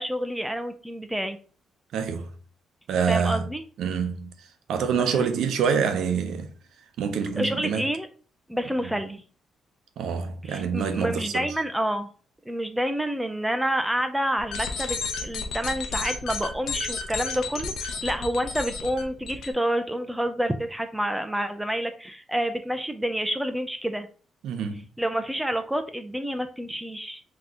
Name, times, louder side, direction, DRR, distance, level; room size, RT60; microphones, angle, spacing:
voice 1, 0.0-1.4 3.1-3.6 5.1-5.2 7.3-8.1 8.5-9.2 10.4-12.1 12.5-24.1 25.0-27.2, equal, 5° right, 0.5 m, -28 dB
voice 2, 1.9-2.3 2.9-3.4 3.8-4.3 4.7-6.5 7.0-7.9 8.8-8.9 10.0-11.3 24.4-24.8, right 6 dB, 75° right, 0.6 m, -26 dB
sound 1, 14.4-19.5, left 4 dB, 75° left, 0.8 m, -32 dB
3.8 x 2.9 x 3.6 m
cardioid pair, 90°, 0 cm